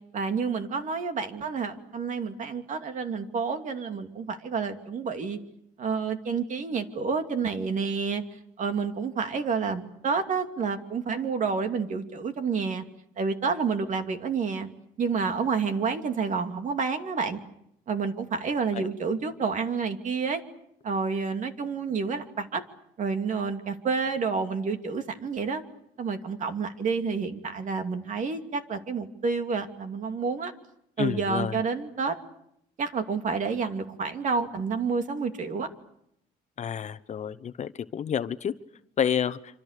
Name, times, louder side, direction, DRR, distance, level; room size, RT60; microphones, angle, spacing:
voice 1, 0.1-5.4 5.8-8.2 8.6-12.8 13.2-14.7 15.0-17.4 17.9-20.4 20.8-22.6 23.0-25.6 26.0-30.5 31.0-32.2 32.8-35.7, right 5 dB, 45° right, 7 dB, 2.6 m, -29 dB
voice 2, 31.0-31.6 36.6-38.5 39.0-39.4, left 8 dB, 45° left, 13 dB, 1.1 m, -29 dB
26.5 x 26.0 x 6.7 m, 0.75 s
cardioid pair, 110°, 17 cm